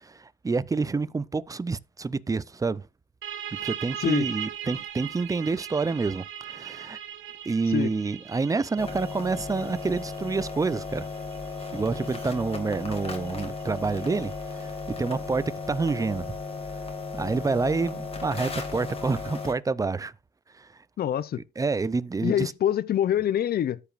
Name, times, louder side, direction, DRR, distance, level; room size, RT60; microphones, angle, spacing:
voice 1, 0.0-2.9 3.6-7.0 7.4-11.1 11.7-16.4 17.1-20.1 20.5-20.7 21.6-22.5, right 4 dB, 15° right, 0.4 m, -28 dB
sound 1, 3.2-14.6, right 10 dB, 80° right, 1.2 m, -40 dB
sound 2, 8.8-19.5, left 4 dB, 30° left, 2.0 m, -35 dB
voice 2, 21.0-21.4 22.2-23.8, left 10 dB, 50° left, 0.5 m, -25 dB
14.0 x 5.1 x 2.4 m
cardioid pair, 90°, 20 cm